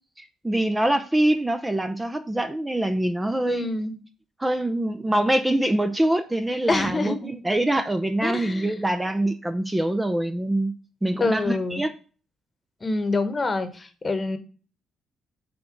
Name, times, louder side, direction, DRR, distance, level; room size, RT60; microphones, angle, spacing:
voice 1, 0.2-3.7 4.4-10.7 11.0-11.9, right 1 dB, 15° right, 0.5 m, -24 dB
voice 2, 3.5-3.9 6.7-7.3 8.2-8.7 11.2-11.8 12.8-14.4, left 3 dB, 30° left, 1.1 m, -26 dB
6.0 x 3.8 x 6.0 m
cardioid pair, 90°, 0 cm